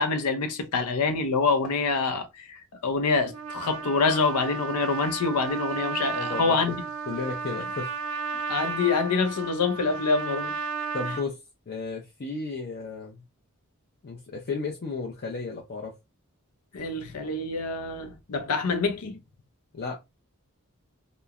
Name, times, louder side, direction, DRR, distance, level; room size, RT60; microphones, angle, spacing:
voice 1, 0.0-6.8 8.5-10.6 16.7-19.2, left 4 dB, 90° left, 0.6 m, -26 dB
Trumpet, 3.2-11.2, right 5 dB, 65° right, 0.5 m, -34 dB
voice 2, 6.1-6.8 7.1-7.9 10.9-11.4 11.7-13.2 14.0-15.9 19.7-20.0, left 4 dB, 45° left, 0.5 m, -33 dB
2.9 x 2.0 x 2.3 m
head